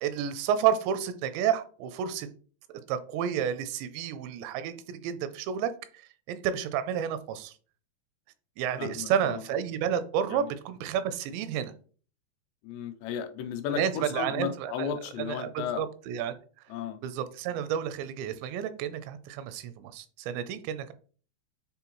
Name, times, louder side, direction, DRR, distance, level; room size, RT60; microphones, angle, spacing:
voice 1, 0.0-2.3 2.9-5.8 6.3-7.5 8.6-11.7 13.8-14.9 15.3-16.3 17.0-20.9, right 9 dB, 85° right, 12 dB, 2.9 m, -30 dB
voice 2, 8.8-9.4 10.3-10.5 12.6-15.8 16.7-17.0, left 8 dB, 85° left, 7 dB, 2.8 m, -34 dB
9.5 x 3.8 x 3.0 m, 0.41 s
omnidirectional pair, 5.0 m